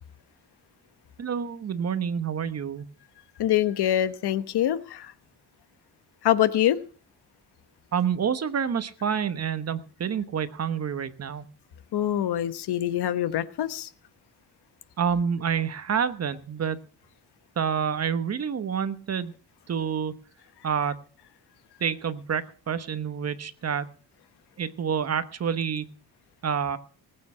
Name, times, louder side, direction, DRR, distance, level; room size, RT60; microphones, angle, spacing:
voice 1, 1.2-2.8 7.9-11.5 15.0-16.8 17.6-19.3 19.7-20.1 20.6-21.0 21.8-23.9 24.6-25.9 26.4-26.8, right 7 dB, 40° right, 1.2 m, -28 dB
voice 2, 3.4-5.1 6.2-6.8 11.9-13.9, left 12 dB, 75° left, 1.1 m, -24 dB
19.0 x 8.7 x 5.7 m
cardioid pair, 155°, 39 cm